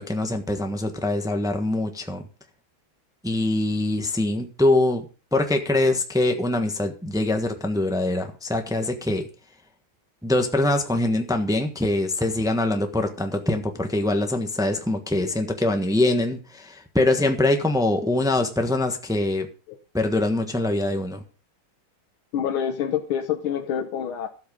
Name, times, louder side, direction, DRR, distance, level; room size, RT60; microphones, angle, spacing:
voice 1, 0.0-2.2 3.2-5.1 5.3-9.2 10.2-19.5 19.9-21.2, left 2 dB, ahead, 5 dB, 0.9 m, -23 dB
voice 2, 22.3-24.3, left 8 dB, 85° left, 5 dB, 1.8 m, -27 dB
13.0 x 7.7 x 5.1 m, 0.35 s
omnidirectional pair, 2.2 m